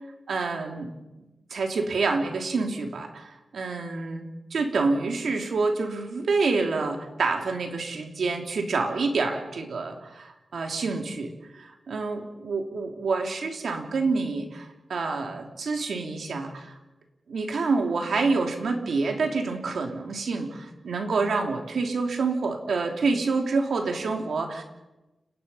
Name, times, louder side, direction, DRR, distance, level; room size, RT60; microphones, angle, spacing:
voice 1, 0.3-0.9 1.5-16.8 17.3-24.6, right 4 dB, 85° right, 3 dB, 3.2 m, -27 dB
30.0 x 18.5 x 5.7 m, 1.0 s
wide cardioid pair, 145°, 0 cm